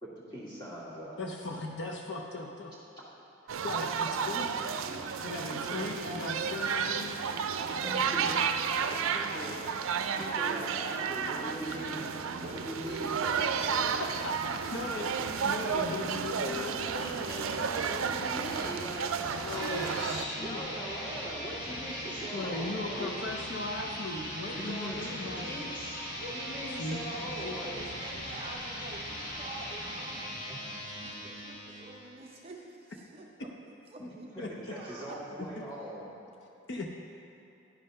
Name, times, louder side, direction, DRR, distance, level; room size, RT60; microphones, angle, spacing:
voice 1, 0.0-1.2 3.0-3.1 7.8-8.3 8.8-9.6 10.2-14.0 16.5-19.9 20.4-23.1 24.5-27.8 28.4-28.5 30.5-30.6 34.0-36.1, right 1 dB, 20° left, -7 dB, 1.9 m, -41 dB
voice 2, 1.2-2.7 3.6-4.5 4.9-8.3 14.0-16.9 19.4-20.7 22.3-25.6 26.7-27.6 34.4-34.5 35.6-35.7 36.7-36.9, left 2 dB, 55° left, 1 dB, 0.6 m, -38 dB
sound 1, 3.5-20.2, right 6 dB, 80° right, 0.4 m, -32 dB
voice 3, 3.7-4.5 4.8-5.1 7.5-11.8 14.4-14.7 27.1-30.6 31.0-34.3 34.7-35.2, right 3 dB, 25° right, 0 dB, 0.5 m, -47 dB
sound 2, 12.3-30.0, right 1 dB, 5° left, 0.7 m, -54 dB
sound 3, 19.4-32.2, equal, 40° left, 2.1 m, -39 dB
10.5 x 5.6 x 5.4 m, 2.8 s
head